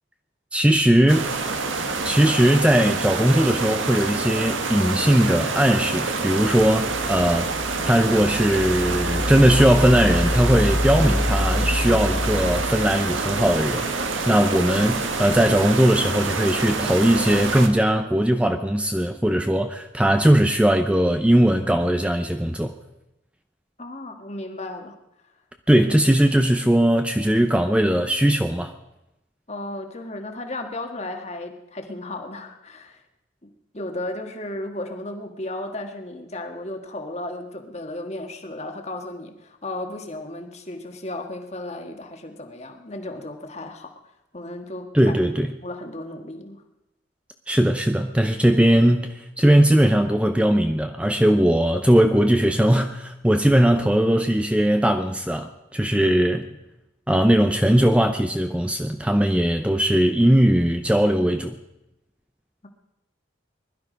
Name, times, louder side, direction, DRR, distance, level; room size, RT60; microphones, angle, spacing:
voice 1, 0.5-1.3 2.0-7.5 7.8-13.9 14.3-22.7 25.7-28.7 44.9-45.5 47.5-56.5 57.1-61.6, right 1 dB, 5° right, 6 dB, 0.6 m, -19 dB
sound 1, 1.1-17.7, right 4 dB, 90° right, 1.6 m, -27 dB
sound 2, 6.4-13.9, left 1 dB, 25° right, 1.9 m, -27 dB
voice 2, 23.8-25.0 29.5-33.0 33.4-43.9 44.3-45.2 45.6-46.6, left 1 dB, 35° left, 4 dB, 1.6 m, -34 dB
21.0 x 12.0 x 5.2 m, 0.92 s
head